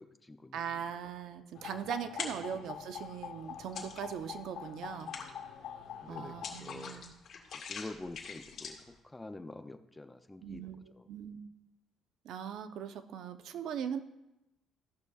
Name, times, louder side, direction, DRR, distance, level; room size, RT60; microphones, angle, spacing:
voice 1, 0.0-0.8 2.3-2.6 6.0-7.1 7.7-11.1, left 2 dB, 10° left, 9 dB, 0.5 m, -47 dB
voice 2, 0.5-5.1 6.1-7.1 10.4-11.5 12.2-14.0, right 8 dB, 65° right, 9 dB, 0.8 m, -40 dB
sound 1, 1.6-6.6, left 8 dB, 65° left, 1.1 m, -45 dB
sound 2, 2.0-2.7 3.1-4.3 4.7-9.0, left 6 dB, 50° left, 1.9 m, -44 dB
14.5 x 11.5 x 2.4 m, 0.93 s
cardioid pair, 120°, 0 cm